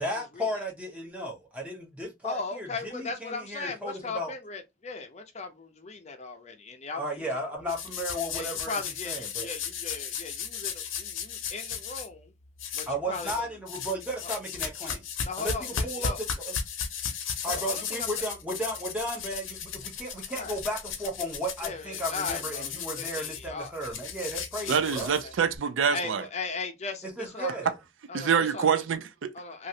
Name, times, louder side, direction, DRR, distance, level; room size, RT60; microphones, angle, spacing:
voice 1, 0.0-4.3 7.0-8.8 9.0-9.5 12.9-15.1 15.4-15.5 15.8-16.1 17.4-25.1 27.0-27.7, equal, 5° right, 0.8 m, -34 dB
voice 2, 2.2-7.3 7.5-7.6 8.3-12.3 12.7-13.5 14.2-14.3 15.2-16.2 17.4-18.1 20.3-20.6 21.6-23.9 24.6-25.3 25.9-27.7 28.1-28.8 29.3-29.7, left 4 dB, 35° left, 0.5 m, -38 dB
sound 1, 7.7-12.1 12.6-13.4 13.7-25.6, left 7 dB, 80° left, 0.7 m, -35 dB
voice 3, 24.7-26.2 28.1-29.3, right 7 dB, 75° right, 0.4 m, -26 dB
3.0 x 2.5 x 2.7 m
head